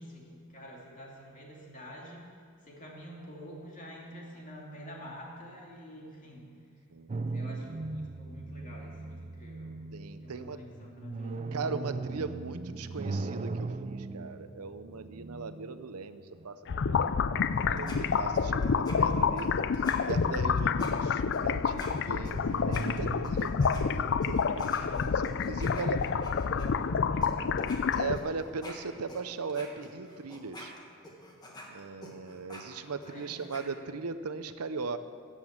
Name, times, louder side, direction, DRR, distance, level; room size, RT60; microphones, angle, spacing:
voice 1, 0.0-2.2 2.6-6.5 7.1-9.8 10.2-12.3 24.7-27.7 33.0-33.4, equal, 35° left, -2 dB, 2.8 m, -47 dB
voice 2, 6.9-7.2 9.9-10.6 11.5-24.6 25.2-26.0 27.9-30.7 31.7-35.0, right 4 dB, 90° right, 11 dB, 0.7 m, -39 dB
sound 1, 7.1-16.4 17.7-19.3 19.7-20.8 22.1-23.8, right 3 dB, 30° right, 0.4 m, -39 dB
sound 2, 16.7-28.2, left 6 dB, 55° left, 0.4 m, -28 dB
sound 3, 17.4-23.8 24.2-26.7 27.2-27.3 27.6-33.6, left 1 dB, 20° left, 1.7 m, -48 dB
15.5 x 8.2 x 7.3 m, 2.3 s
head